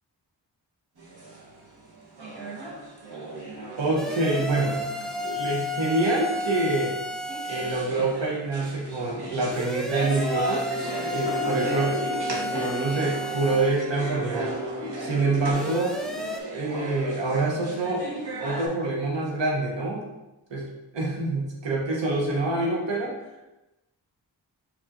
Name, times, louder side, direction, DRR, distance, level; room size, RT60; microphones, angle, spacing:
sound 1, 1.0-18.7, right 2 dB, 65° right, 1.2 m, -36 dB
voice 1, 3.8-4.8 5.2-7.0 7.4-10.7 11.1-12.0 12.3-14.7 15.0-16.0 16.5-18.0 18.4-20.0 20.5-20.7 20.9-23.1, right 2 dB, 80° right, -3 dB, 0.9 m, -26 dB
sound 2, 4.0-7.9 9.5-13.8 15.5-16.4, left 2 dB, ahead, 0.4 m, -32 dB
Keyboard (musical), 10.1-15.5, left 2 dB, 25° right, 0.7 m, -37 dB
4.4 x 4.1 x 2.5 m, 0.99 s
cardioid pair, 45°, 43 cm